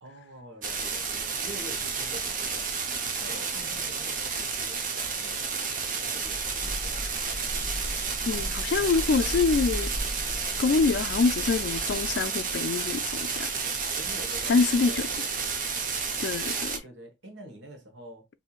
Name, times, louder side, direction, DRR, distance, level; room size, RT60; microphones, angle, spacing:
voice 1, 0.0-2.7 3.2-5.5 6.0-7.0 8.7-8.9 13.2-13.4 13.9-15.6 16.8-18.3, right 1 dB, 75° right, 1.1 m, -46 dB
sound 1, 0.6-16.8, right 5 dB, 45° right, 0.7 m, -31 dB
sound 2, 6.3-12.3, equal, 5° right, 0.8 m, -37 dB
voice 2, 8.3-9.9 10.6-13.5 14.5-15.1 16.2-16.8, left 4 dB, 60° left, 0.3 m, -25 dB
4.3 x 2.7 x 2.4 m
head